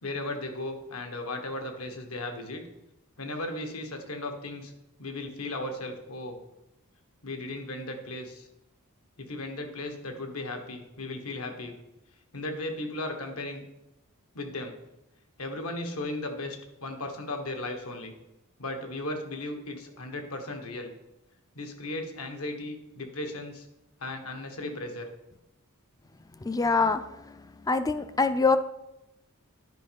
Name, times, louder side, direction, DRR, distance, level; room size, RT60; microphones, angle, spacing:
voice 1, 0.0-2.6 3.2-4.7 5.0-6.4 7.2-8.5 9.2-11.7 12.3-13.6 14.3-14.8 15.4-18.1 18.6-20.9 21.5-23.7 24.0-25.1, left 2 dB, 70° left, 4 dB, 1.4 m, -36 dB
voice 2, 26.4-27.0 27.7-28.6, left 4 dB, 15° left, 11 dB, 0.4 m, -24 dB
10.0 x 5.3 x 5.3 m, 0.91 s
head